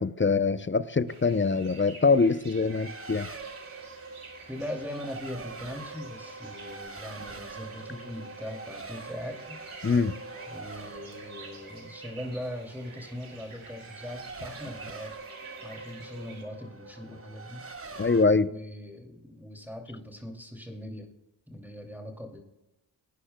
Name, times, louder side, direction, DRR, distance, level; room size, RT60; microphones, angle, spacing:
voice 1, 0.0-3.3 9.8-10.1 18.0-18.5, left 4 dB, 25° left, 14 dB, 0.6 m, -24 dB
sound 1, 1.1-16.4, right 4 dB, 80° right, 2.5 m, -50 dB
Race car auto racing, 2.5-18.3, right 3 dB, 30° right, 1.1 m, -44 dB
voice 2, 4.5-9.6 10.5-15.1 15.6-18.0 18.4-21.1 21.5-22.4, left 1 dB, 5° right, 1 dB, 2.5 m, -40 dB
18.5 x 9.9 x 2.2 m, 0.95 s
cardioid pair, 45°, 49 cm